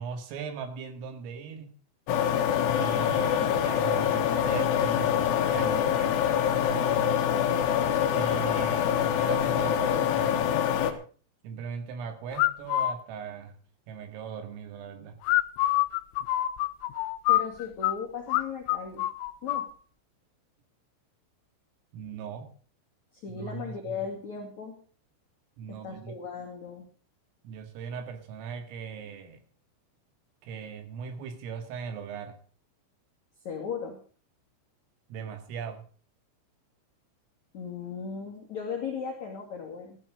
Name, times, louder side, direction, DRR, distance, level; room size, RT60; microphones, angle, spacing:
voice 1, 0.0-1.7 2.6-7.2 8.1-10.5 11.4-13.5 13.9-15.2 21.9-22.5 23.3-24.0 25.6-26.2 27.4-29.4 30.4-32.4 35.1-35.8, right 6 dB, 85° right, 7 dB, 4.8 m, -39 dB
sound 1, 2.1-10.9, left 9 dB, 65° left, 3.2 m, -25 dB
sound 2, 12.4-12.9 15.2-18.0 18.3-18.4 18.7-19.7, left 15 dB, 90° left, 3.5 m, -25 dB
voice 2, 17.3-19.0 19.4-19.7 23.1-24.8 25.8-26.9 33.4-34.0 37.5-40.0, left 6 dB, 45° left, 0 dB, 2.8 m, -37 dB
15.0 x 12.0 x 5.0 m, 0.41 s
omnidirectional pair, 5.8 m